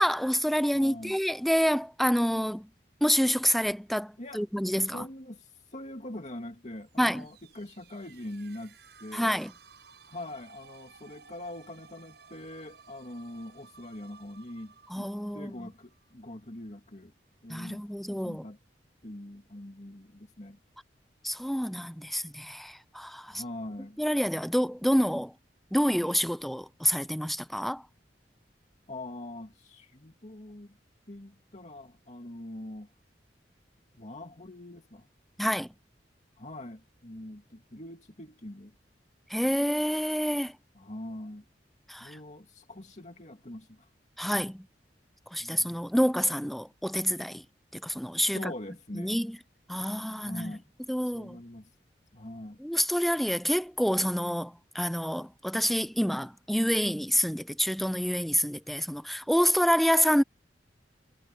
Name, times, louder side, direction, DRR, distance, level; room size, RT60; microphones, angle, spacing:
voice 1, 0.0-2.7 3.0-5.0 7.0-7.3 9.1-9.5 14.9-15.5 17.5-18.4 21.2-23.4 24.0-25.3 25.7-27.8 35.4-35.7 39.3-40.5 41.9-42.2 44.2-44.7 45.3-47.4 47.7-48.5 48.9-49.4 49.7-50.6 50.9-51.4 52.6-60.2, equal, ahead, 0.4 m, -27 dB
voice 2, 0.7-1.2 4.2-4.4 4.8-9.4 10.1-17.1 17.4-18.6 19.0-20.6 23.3-24.0 28.9-30.8 31.1-32.9 33.9-35.1 36.4-38.7 40.7-41.5 42.0-43.9 45.4-45.8 48.3-49.2 50.2-50.6 51.0-51.7 52.1-52.6, left 1 dB, 40° left, 2.3 m, -43 dB
sound 1, 6.8-16.6, right 5 dB, 70° right, 7.8 m, -56 dB
head